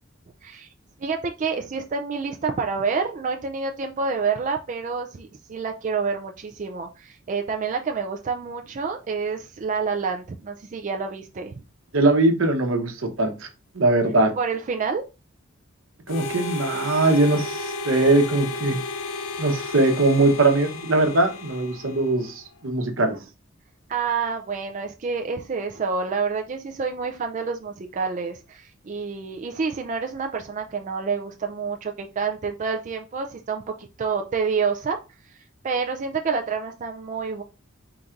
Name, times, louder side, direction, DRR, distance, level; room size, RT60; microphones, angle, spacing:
voice 1, 1.0-11.5 14.4-15.0 23.1-23.2 23.9-35.0 35.3-35.4 35.6-37.4, right 5 dB, 40° right, 4 dB, 0.4 m, -28 dB
voice 2, 11.9-13.5 13.7-14.3 16.1-18.8 19.4-23.1, right 2 dB, 75° right, 5 dB, 0.9 m, -21 dB
Harmonica, 16.1-22.4, left 2 dB, 85° left, 0.5 m, -33 dB
3.9 x 2.5 x 4.4 m, 0.30 s
head